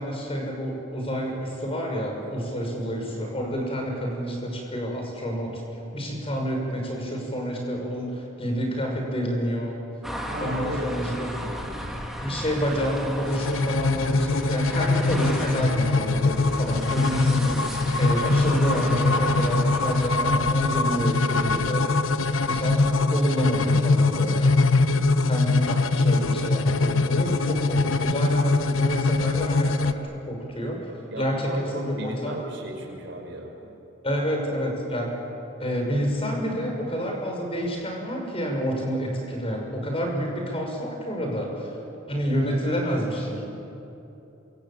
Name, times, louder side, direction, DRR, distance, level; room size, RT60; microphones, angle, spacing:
voice 1, 0.0-9.8 10.4-11.3 12.2-21.9 22.4-24.5 25.2-32.3 34.0-35.1 35.6-41.8 42.1-43.4, equal, 30° left, 1 dB, 6.2 m, -28 dB
sound 1, 10.0-20.4, equal, ahead, 2.8 m, -34 dB
voice 2, 10.2-11.9 24.8-25.3 31.1-33.5, right 1 dB, 65° right, 1 dB, 6.0 m, -36 dB
sound 2, 13.3-29.9, left 3 dB, 85° left, 1.1 m, -22 dB
27.0 x 25.0 x 8.9 m, 2.9 s
head